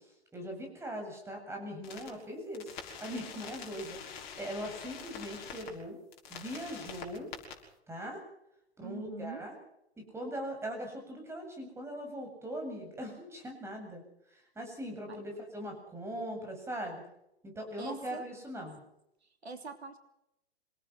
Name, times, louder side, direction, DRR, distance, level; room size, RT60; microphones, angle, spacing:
voice 1, 0.3-2.7 3.0-6.0 6.3-7.3 7.9-8.2 8.8-9.5 10.0-14.0 14.3-17.0 17.4-18.8, equal, 10° right, 3 dB, 7.9 m, -40 dB
sound 1, 1.8-2.1 2.5-5.7 6.1-7.5, left 7 dB, 45° left, 6.3 m, -45 dB
voice 2, 8.8-9.5 15.1-15.2 17.8-18.2 19.2-20.0, right 4 dB, 80° right, 7 dB, 3.0 m, -44 dB
27.0 x 18.5 x 6.0 m, 0.82 s
figure-of-eight pair, 110°, 32 cm